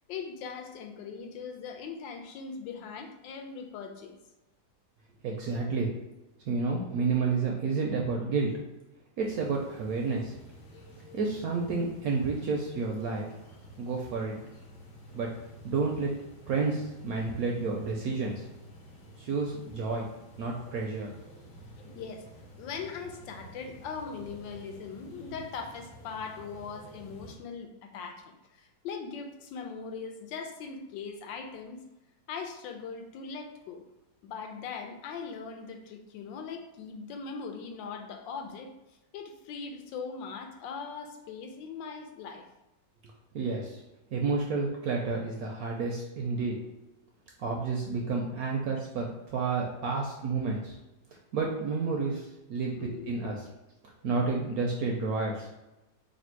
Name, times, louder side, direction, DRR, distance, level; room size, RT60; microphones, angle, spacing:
voice 1, 0.1-4.1 21.8-22.3 22.6-31.8 32.3-33.8 34.2-38.7 39.1-42.5 52.7-53.1, left 5 dB, 85° left, 4 dB, 1.3 m, -40 dB
voice 2, 5.2-5.9 6.5-8.5 9.2-10.3 11.1-13.3 13.8-14.4 15.1-15.3 15.6-16.1 16.5-18.4 19.2-20.1 20.4-21.1 43.3-43.8 44.1-46.6 47.4-50.8 51.3-53.5 54.0-55.5, right 4 dB, 75° right, -1 dB, 0.8 m, -30 dB
sound 1, 9.2-27.4, equal, 60° left, 1.2 m, -51 dB
3.3 x 2.6 x 4.4 m, 0.97 s
omnidirectional pair, 2.0 m